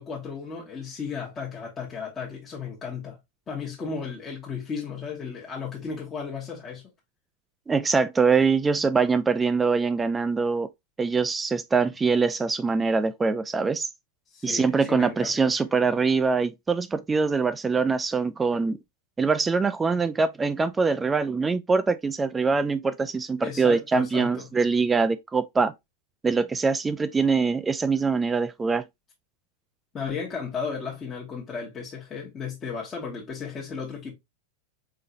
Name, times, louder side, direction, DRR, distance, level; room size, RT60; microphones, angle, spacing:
voice 1, 0.0-3.2 3.5-6.8 14.3-15.5 23.4-24.5 29.9-34.1, left 5 dB, 25° left, 1.1 m, -34 dB
voice 2, 7.7-10.7 11.0-13.9 14.4-18.8 19.2-25.7 26.2-28.8, right 4 dB, 15° right, 0.3 m, -23 dB
3.8 x 3.7 x 2.6 m
hypercardioid pair, 95°, 0 cm